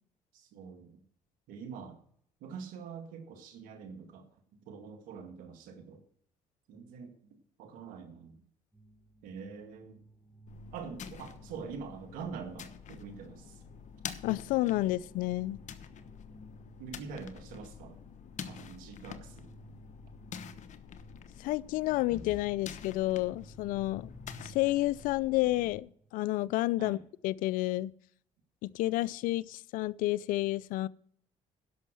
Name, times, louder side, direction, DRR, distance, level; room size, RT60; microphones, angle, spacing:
voice 1, 0.3-1.0 1.5-2.0 2.4-4.3 4.5-6.0 6.7-8.4 9.2-10.0 10.7-13.6 16.8-18.0 18.5-19.5 26.8-27.0, right 6 dB, 85° right, 1.9 m, -45 dB
sound 1, 8.7-26.1, right 2 dB, ahead, 2.2 m, -57 dB
sound 2, 10.5-25.8, left 7 dB, 60° left, 1.1 m, -47 dB
voice 2, 14.2-15.6 21.4-24.1 24.4-27.0 27.2-27.9 28.6-30.9, left 17 dB, 80° left, 0.4 m, -30 dB
11.0 x 6.3 x 7.4 m
supercardioid pair, 75°, 14 cm